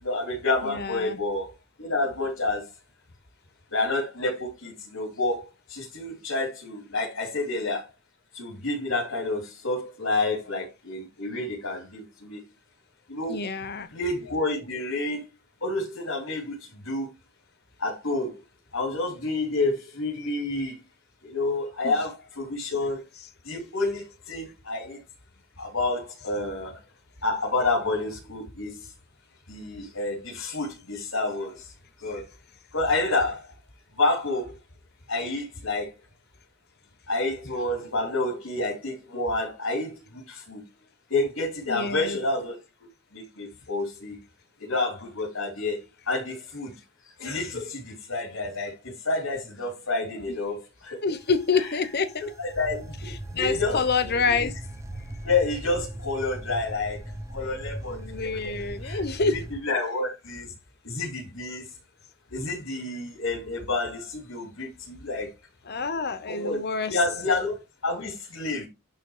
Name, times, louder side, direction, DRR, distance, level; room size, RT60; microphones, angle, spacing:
voice 1, 0.0-1.5 1.8-2.7 3.7-7.9 8.3-12.4 13.1-13.5 13.9-15.2 15.6-17.1 17.8-18.4 18.7-20.8 21.2-23.0 23.4-25.0 25.6-26.8 27.2-28.9 29.5-31.7 32.0-32.2 32.7-33.5 33.9-34.6 35.1-35.9 37.1-40.6 41.1-42.6 43.1-44.2 44.7-46.7 47.2-51.0 51.5-51.7 52.4-54.5 55.2-57.0 57.3-58.3 58.8-60.5 60.8-61.7 62.3-65.3 66.3-66.6 66.9-68.7, left 2 dB, 70° left, 3.2 m, -29 dB
voice 2, 0.6-1.2 13.3-13.9 21.8-22.0 41.7-42.2 51.0-52.2 53.3-54.5 57.9-59.5 65.7-67.0, left 4 dB, 50° left, 1.0 m, -27 dB
sound 1, 51.1-59.6, right 1 dB, 15° right, 0.7 m, -39 dB
11.0 x 4.0 x 4.8 m
head